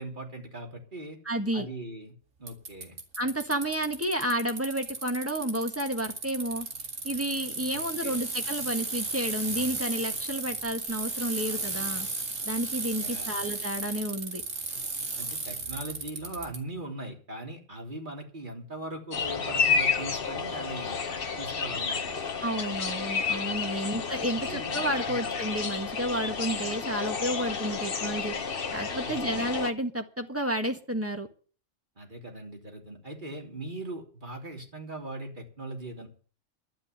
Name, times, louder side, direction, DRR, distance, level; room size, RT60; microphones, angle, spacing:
voice 1, 0.0-1.2 1.5-2.1 2.4-3.0 7.7-8.2 13.0-13.4 15.2-21.0 21.4-22.2 24.3-24.8 25.1-25.2 29.0-29.4 32.0-36.1, right 2 dB, 40° right, 2 dB, 3.4 m, -40 dB
voice 2, 1.2-1.7 3.2-6.7 7.0-12.1 12.4-14.4 22.4-28.3 28.7-31.3, right 1 dB, 10° right, 5 dB, 1.6 m, -31 dB
Bicycle, 2.5-16.6, right 3 dB, 85° right, 2.7 m, -34 dB
sound 1, 19.1-29.7, left 5 dB, 50° left, 1.3 m, -31 dB
12.0 x 9.0 x 9.0 m, 0.41 s
omnidirectional pair, 1.3 m